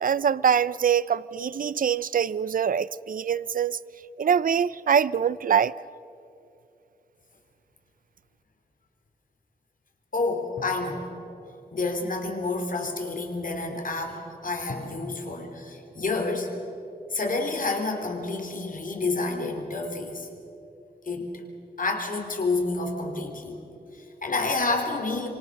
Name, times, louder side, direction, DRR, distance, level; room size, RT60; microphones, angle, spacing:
voice 1, 0.0-3.8 4.2-5.7, right 7 dB, 55° right, 0.5 m, -24 dB
voice 2, 10.1-11.1 11.7-16.5 17.1-20.3 21.0-21.4 21.8-23.6 23.9-25.3, left 3 dB, 55° left, 3.7 m, -29 dB
Drum, 10.6-12.1 14.7-16.9, left 1 dB, 80° left, 4.3 m, -44 dB
27.0 x 24.5 x 6.6 m
wide cardioid pair, 105°, 17 cm